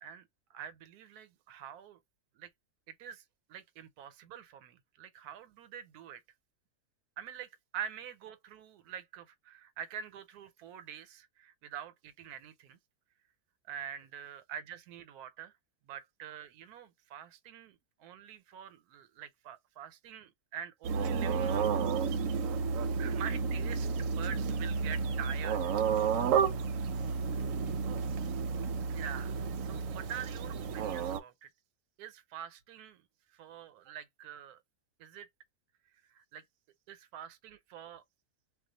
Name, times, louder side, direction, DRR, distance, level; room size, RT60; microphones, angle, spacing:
voice 1, 0.0-2.0 2.4-2.5 2.9-3.2 3.5-6.2 7.2-12.8 13.7-15.5 15.9-22.2 23.0-25.8 28.9-31.5 32.0-33.0 33.3-34.6 35.0-35.3 36.1-36.4 36.9-38.0, right 9 dB, 90° right, 1.1 m, -45 dB
sound 1, 20.8-31.2, right 5 dB, 70° right, 0.9 m, -31 dB
2.4 x 2.2 x 3.8 m
omnidirectional pair, 1.6 m